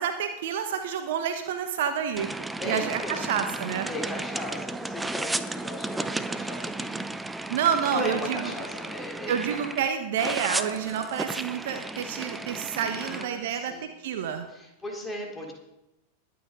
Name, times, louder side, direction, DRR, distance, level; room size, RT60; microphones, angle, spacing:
voice 1, 0.0-2.3 2.6-3.9 7.5-8.5 9.3-14.5, right 8 dB, 55° right, 7 dB, 1.3 m, -29 dB
sound 1, 2.2-9.9 10.2-13.3, right 2 dB, 5° right, 0.7 m, -34 dB
voice 2, 2.6-3.4 3.9-7.1 7.9-9.6 12.7-15.5, left 1 dB, 10° left, -1 dB, 3.8 m, -37 dB
21.0 x 9.2 x 3.9 m, 0.88 s
figure-of-eight pair, 90°, 0 cm